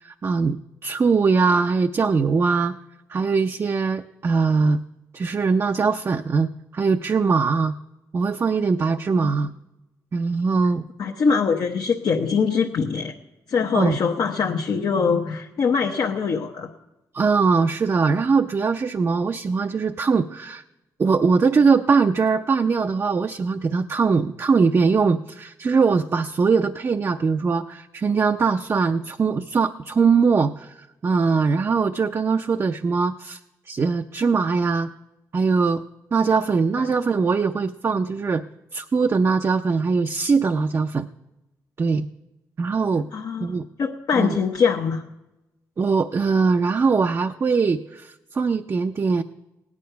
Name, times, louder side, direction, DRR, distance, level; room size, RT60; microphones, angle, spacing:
voice 1, 0.0-2.7 3.1-4.8 5.1-7.7 8.1-9.5 10.1-10.8 13.7-14.0 17.1-20.6 21.0-33.4 33.7-34.9 35.3-35.8 36.1-38.4 38.7-41.1 41.8-42.1 42.6-43.1 43.4-43.6 44.2-44.4 45.8-49.2, right 5 dB, 40° right, 6 dB, 0.5 m, -21 dB
voice 2, 11.0-13.1 13.5-16.7 36.8-36.9 43.1-43.5 43.8-45.0, left 5 dB, 70° left, 1 dB, 0.9 m, -23 dB
16.5 x 9.6 x 5.7 m, 0.98 s
cardioid pair, 70°, 7 cm